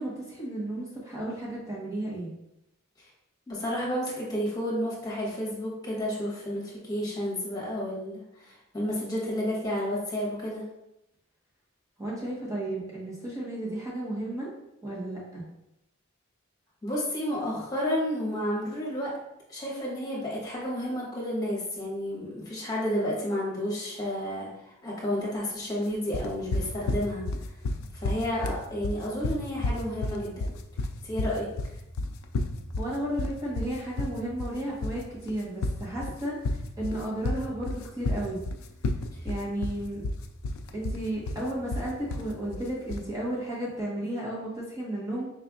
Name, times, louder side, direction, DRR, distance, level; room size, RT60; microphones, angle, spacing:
voice 1, 0.0-2.3 12.0-14.5 14.8-15.4 32.8-36.4 36.8-38.4 39.2-40.0 40.7-45.3, right 1 dB, 15° right, -6 dB, 1.1 m, -33 dB
voice 2, 3.5-10.6 16.8-19.1 19.5-27.2 27.9-30.5 31.0-31.5 39.1-39.2, equal, 20° left, -5 dB, 1.3 m, -31 dB
sound 1, 26.1-43.1, left 2 dB, 85° left, 0.4 m, -31 dB
4.8 x 3.3 x 2.4 m, 0.86 s
head